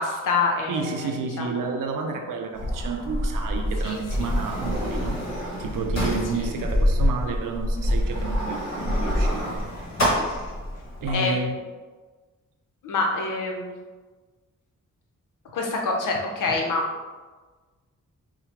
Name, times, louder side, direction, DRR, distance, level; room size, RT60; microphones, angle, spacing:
voice 1, 0.0-1.8 3.8-4.3 6.3-6.5 11.1-11.3 12.8-13.7 15.5-16.8, left 3 dB, 75° left, 0 dB, 0.8 m, -27 dB
voice 2, 0.6-5.2 5.6-9.6 11.0-11.6, right 4 dB, 80° right, 4 dB, 0.6 m, -30 dB
Sliding door, 2.5-11.1, equal, 55° left, 1.4 m, -26 dB
4.7 x 2.2 x 3.5 m, 1.3 s
cardioid pair, 50°, 32 cm